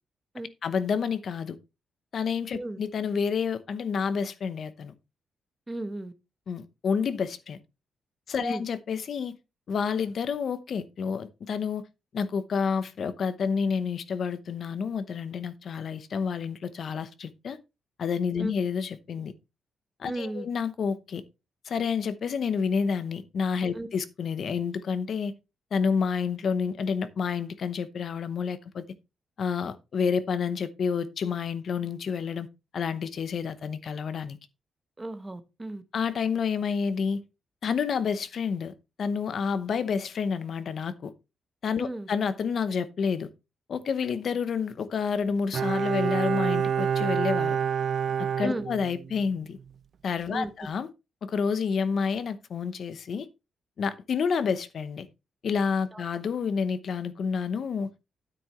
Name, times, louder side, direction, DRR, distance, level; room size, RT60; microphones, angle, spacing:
voice 1, 0.6-1.6 2.1-4.9 6.5-7.6 8.3-9.3 9.7-11.8 12.1-17.6 18.0-19.3 20.0-21.2 21.6-25.3 25.7-28.8 29.4-32.5 32.7-34.4 35.9-37.2 37.6-38.7 39.0-41.1 41.6-43.3 43.7-47.6 48.4-49.6 50.0-50.9 51.2-53.3 53.8-55.1 55.4-57.9, left 6 dB, 50° left, 0.8 m, -29 dB
voice 2, 5.7-6.1 8.4-8.6 18.4-18.5 20.0-20.5 23.7-23.9 35.0-35.8 41.8-42.1 48.4-48.7 50.3-50.5 55.9-56.0, right 2 dB, 15° right, 0.9 m, -35 dB
Bowed string instrument, 45.5-49.3 49.6-49.7, right 8 dB, 50° right, 0.5 m, -27 dB
9.4 x 8.6 x 3.0 m
wide cardioid pair, 160°, 0 cm